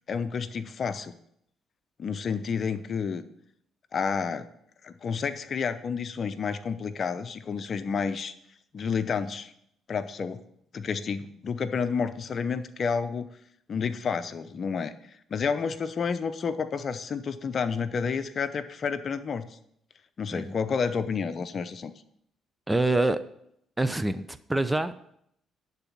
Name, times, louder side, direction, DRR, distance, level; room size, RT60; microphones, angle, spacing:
voice 1, 0.1-1.1 2.0-3.2 3.9-4.5 4.8-8.3 8.7-9.5 9.9-10.4 10.7-13.3 13.7-14.9 15.3-19.5 20.2-21.9, left 6 dB, 50° left, 11 dB, 0.7 m, -30 dB
voice 2, 22.7-23.2 23.8-24.9, right 2 dB, 10° right, 13 dB, 0.6 m, -26 dB
11.5 x 4.0 x 7.4 m, 0.73 s
supercardioid pair, 65°, 0 cm